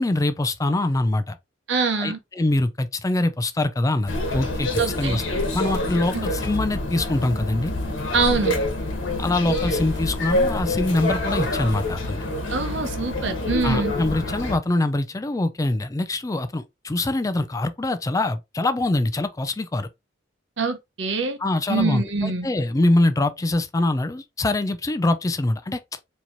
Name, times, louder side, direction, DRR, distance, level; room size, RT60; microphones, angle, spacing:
voice 1, 0.0-1.4 2.0-4.7 5.0-5.2 5.5-7.7 9.2-12.2 13.6-19.9 21.4-25.8, left 2 dB, 15° left, 0.4 m, -24 dB
voice 2, 1.7-2.2 4.8-5.2 6.1-6.3 8.1-8.6 12.5-13.9 20.6-21.4 21.7-22.5, right 4 dB, 65° right, 0.8 m, -24 dB
sound 1, 4.1-14.6, left 1 dB, 85° left, 1.1 m, -26 dB
4.4 x 2.9 x 2.6 m
head